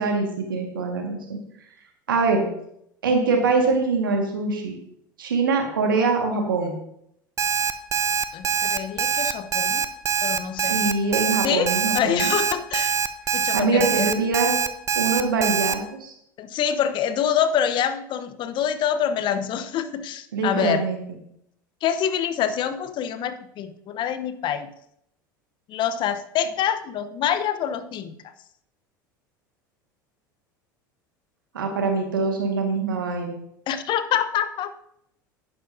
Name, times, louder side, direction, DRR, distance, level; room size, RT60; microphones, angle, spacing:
voice 1, 0.0-1.4 2.1-2.4 3.0-4.8 5.2-6.8 10.7-12.3 13.5-14.6 15.0-16.1 20.3-21.0 31.5-33.4, right 4 dB, 85° right, 3 dB, 1.8 m, -23 dB
Alarm, 7.4-15.7, right 6 dB, 25° right, 0.7 m, -23 dB
voice 2, 8.3-9.8 10.2-10.8 11.4-13.0 13.3-14.1 16.4-20.9 21.8-24.7 25.7-28.2 33.7-34.7, left 9 dB, 45° left, 11 dB, 0.9 m, -26 dB
11.0 x 10.0 x 2.7 m, 0.75 s
hypercardioid pair, 80°, 11 cm